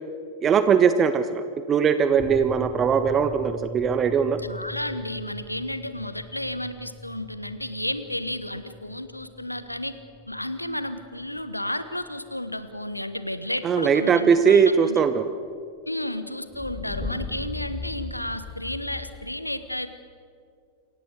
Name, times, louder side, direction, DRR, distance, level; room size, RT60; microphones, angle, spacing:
voice 1, 0.4-1.4 1.7-4.4 13.6-15.2, right 6 dB, 25° right, 11 dB, 1.0 m, -20 dB
sound 1, 2.2-14.1 14.4-14.5 16.5-19.1, left 2 dB, 10° left, 1.6 m, -39 dB
voice 2, 4.4-10.0 10.3-15.0 15.9-19.9, left 1 dB, 85° left, 11 dB, 1.2 m, -32 dB
27.5 x 15.5 x 8.0 m, 2.3 s
figure-of-eight pair, 90°, 0 cm